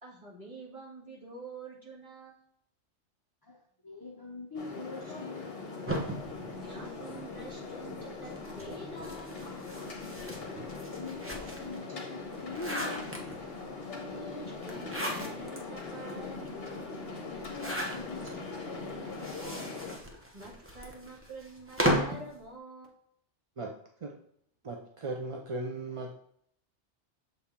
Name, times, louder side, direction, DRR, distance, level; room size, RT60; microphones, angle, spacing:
voice 1, 0.0-2.4 6.4-9.4 13.9-16.4 20.3-22.9, right 2 dB, 30° right, -5 dB, 1.9 m, -47 dB
voice 2, 3.8-5.6 10.9-13.1 17.3-19.5, left 4 dB, 30° left, 0 dB, 0.5 m, -44 dB
sound 1, 4.5-19.9, left 3 dB, 55° left, 1.4 m, -41 dB
sound 2, 5.9-7.5 8.3-11.8 12.2-13.6 14.6-15.6 16.1-16.2 16.4-16.5 17.4-18.3 19.1-22.3, equal, 15° right, 0.8 m, -35 dB
voice 3, 24.6-26.3, right 2 dB, 45° right, 2 dB, 0.4 m, -37 dB
6.7 x 4.2 x 3.6 m, 0.68 s
omnidirectional pair, 1.2 m